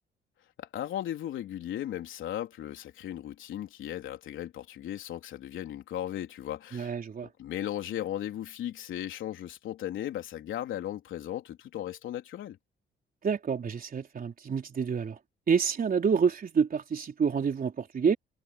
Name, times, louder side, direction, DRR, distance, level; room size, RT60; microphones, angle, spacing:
voice 1, 0.6-6.9 7.2-12.6, left 12 dB, 80° left, 3.6 m, -36 dB
voice 2, 6.7-7.3 13.2-15.2 15.5-18.2, right 6 dB, 45° right, 4.0 m, -28 dB
cardioid pair, 90°, 20 cm